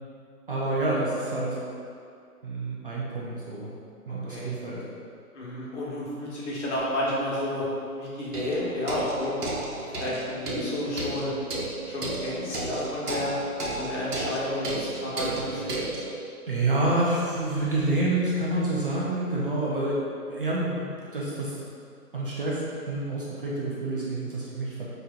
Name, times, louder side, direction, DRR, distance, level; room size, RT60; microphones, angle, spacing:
voice 1, 0.5-1.6 2.4-3.7 4.1-4.8 15.2-15.5 16.5-21.5 22.1-24.9, right 2 dB, 40° right, -6 dB, 0.5 m, -28 dB
voice 2, 4.1-4.5 5.3-7.7 8.0-11.3 11.9-13.3 13.8-15.7, left 1 dB, 45° left, -7 dB, 1.2 m, -31 dB
sound 1, 6.8-6.9 8.3-16.1, right 2 dB, 80° right, 1.0 m, -33 dB
5.2 x 2.8 x 2.4 m, 2.4 s
hypercardioid pair, 145°, 46 cm